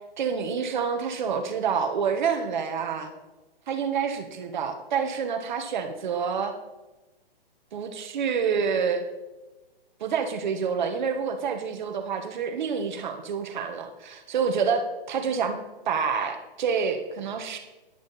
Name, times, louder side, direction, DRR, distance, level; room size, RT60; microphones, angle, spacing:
voice 1, 0.2-3.1 3.7-6.5 7.7-9.0 10.0-15.6 15.9-17.6, right 6 dB, 50° right, 6 dB, 1.4 m, -28 dB
10.5 x 10.5 x 4.2 m, 1.1 s
hypercardioid pair, 150°, 29 cm